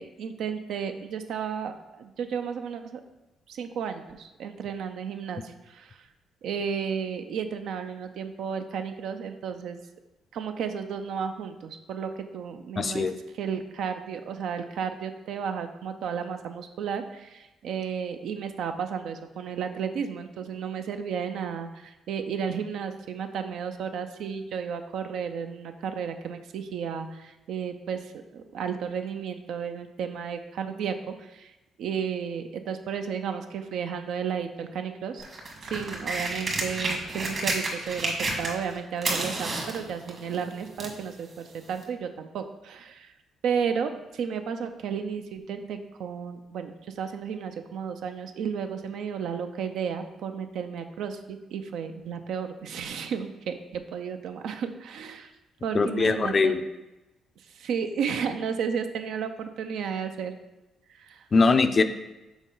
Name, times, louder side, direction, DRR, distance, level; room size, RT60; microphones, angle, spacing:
voice 1, 0.0-3.0 3.5-6.1 6.4-9.8 10.3-31.5 31.8-35.2 35.6-43.1 43.4-55.3 55.6-56.6 57.5-60.3 61.0-61.2, right 7 dB, 75° right, 7 dB, 0.5 m, -33 dB
voice 2, 12.8-13.1 55.7-56.6 61.3-61.8, left 4 dB, 40° left, 9 dB, 0.4 m, -21 dB
sound 1, 35.2-38.7 39.0-41.0 41.8-41.9, right 2 dB, 50° right, 1.5 m, -30 dB
6.2 x 4.1 x 3.8 m, 1.0 s
cardioid pair, 90°, 0 cm